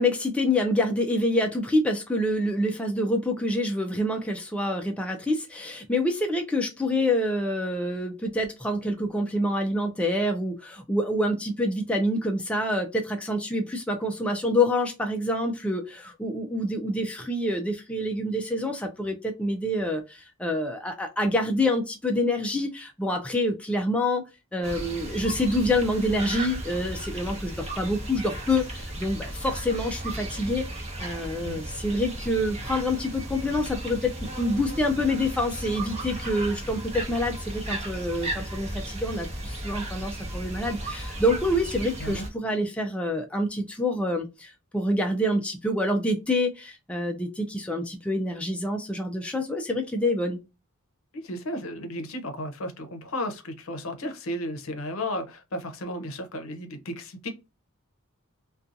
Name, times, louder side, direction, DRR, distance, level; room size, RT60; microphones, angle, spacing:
voice 1, 0.0-24.3 24.5-34.1 34.4-50.4, left 1 dB, 5° left, 0.3 m, -27 dB
sound 1, 24.6-42.3, right 1 dB, 30° right, 0.7 m, -35 dB
voice 2, 41.8-42.3 51.1-57.3, left 1 dB, 70° left, 0.6 m, -34 dB
2.5 x 2.3 x 2.5 m
head